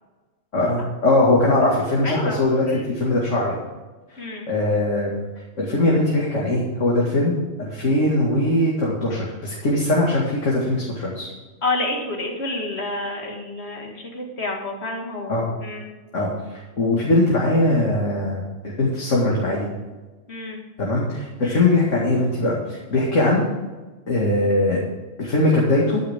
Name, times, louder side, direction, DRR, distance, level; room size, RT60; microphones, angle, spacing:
voice 1, 0.5-3.6 4.5-5.1 5.6-11.3 15.3-15.4 16.1-16.3 16.8-19.7 20.8-23.4 24.1-24.8 25.2-26.0, left 2 dB, 80° left, -4 dB, 2.5 m, -20 dB
voice 2, 2.0-2.9 4.2-4.5 11.6-15.9 20.3-20.6 21.4-21.7, left 2 dB, 60° left, 1 dB, 2.4 m, -29 dB
12.5 x 10.5 x 3.7 m, 1.2 s
omnidirectional pair, 1.3 m